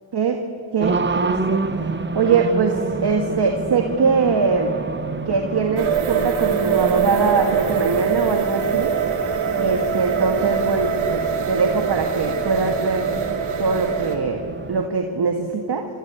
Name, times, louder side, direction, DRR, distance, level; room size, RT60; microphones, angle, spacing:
voice 1, 0.7-1.6 2.1-4.7 5.3-8.9 9.6-13.1 13.6-14.4 14.7-15.8, right 4 dB, 50° right, 3 dB, 1.8 m, -22 dB
Race car auto racing, 0.8-14.9, right 4 dB, 20° right, 1.1 m, -29 dB
sound 1, 5.8-14.2, right 7 dB, 75° right, 2.5 m, -23 dB
27.0 x 13.0 x 8.1 m, 2.6 s
cardioid pair, 60°, 50 cm